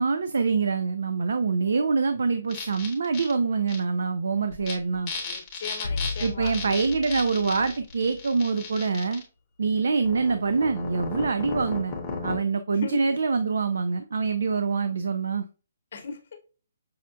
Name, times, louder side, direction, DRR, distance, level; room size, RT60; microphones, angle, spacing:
voice 1, 0.0-5.1 6.2-9.2 9.6-11.9 12.2-15.5, right 4 dB, 70° right, 0.3 m, -25 dB
sound 1, 2.5-3.3 3.7-3.8 4.5-4.7 5.1-9.2 10.0-12.4, left 4 dB, 15° left, 0.7 m, -35 dB
voice 2, 5.2-6.6 12.8-13.0 15.9-16.4, left 5 dB, 45° left, 0.8 m, -37 dB
sound 2, 5.8-8.7, left 4 dB, 75° left, 0.4 m, -35 dB
5.5 x 2.2 x 2.5 m
hypercardioid pair, 180°, 0 cm